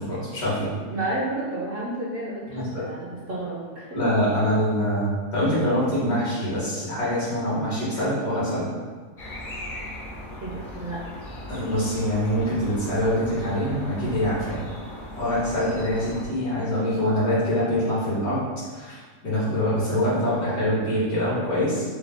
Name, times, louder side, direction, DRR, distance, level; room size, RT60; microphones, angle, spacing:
voice 1, 0.0-0.7 2.5-2.8 3.9-8.7 11.5-14.6 15.1-18.4 18.7-18.9 19.2-21.8, equal, 85° left, -9 dB, 2.1 m, -24 dB
voice 2, 0.9-3.9 10.4-11.0, right 2 dB, 55° right, -5 dB, 0.6 m, -31 dB
sound 1, 9.2-16.3, left 1 dB, 55° left, 0.6 m, -38 dB
4.6 x 2.2 x 3.5 m, 1.5 s
omnidirectional pair, 1.5 m